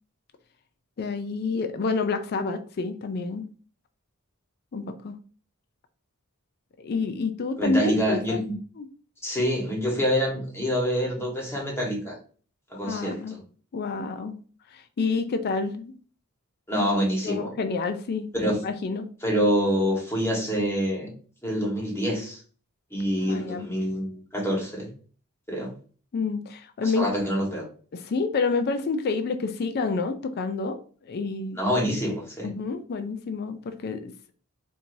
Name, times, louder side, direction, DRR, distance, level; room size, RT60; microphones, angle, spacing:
voice 1, 1.0-3.5 4.7-5.1 6.8-8.4 8.8-8.9 12.8-13.4 13.7-14.4 14.7-15.9 17.2-18.3 18.6-19.1 23.2-23.7 26.1-27.1 27.9-30.8 31.0-31.6 32.4-34.3, left 4 dB, 50° left, 8 dB, 0.4 m, -28 dB
voice 2, 7.6-8.5 9.2-12.2 12.7-13.2 16.7-17.5 18.3-18.6 19.2-21.1 21.4-22.4 22.9-24.9 25.5-25.7 26.8-27.7 31.6-32.5, equal, 10° left, -2 dB, 1.3 m, -26 dB
4.5 x 2.7 x 2.6 m, 0.41 s
head